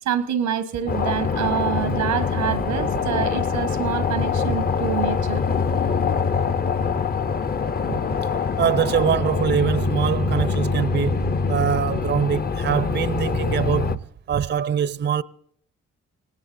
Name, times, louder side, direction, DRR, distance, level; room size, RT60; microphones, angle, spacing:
voice 1, 0.0-5.4, right 9 dB, 85° right, 1.0 m, -26 dB
sound 1, 0.9-14.0, left 5 dB, 35° left, 0.6 m, -24 dB
voice 2, 8.6-15.2, right 8 dB, 40° right, 0.5 m, -24 dB
26.0 x 18.0 x 2.5 m
supercardioid pair, 60°, 29 cm